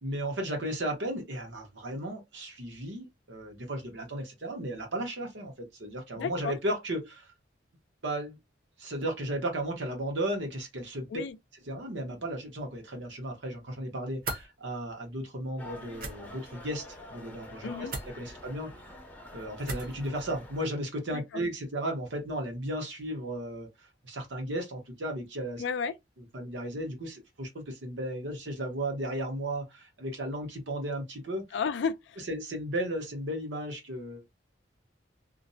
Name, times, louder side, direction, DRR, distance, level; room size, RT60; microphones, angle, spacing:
voice 1, 0.0-7.3 8.0-8.4 8.8-11.1 11.7-17.9 18.1-18.9 19.3-25.6 26.3-31.4 32.3-34.2, right 1 dB, 85° right, 0.9 m, -35 dB
voice 2, 6.2-6.5 11.1-11.4 17.6-17.9 21.1-21.2 25.6-25.9 31.5-32.2, left 6 dB, 75° left, 0.3 m, -32 dB
sound 1, 14.2-14.5 15.9-16.1 17.9-18.1 19.6-20.0, right 2 dB, 55° right, 0.7 m, -35 dB
sound 2, 15.6-20.7, left 1 dB, 10° left, 0.5 m, -47 dB
2.5 x 2.0 x 2.6 m
head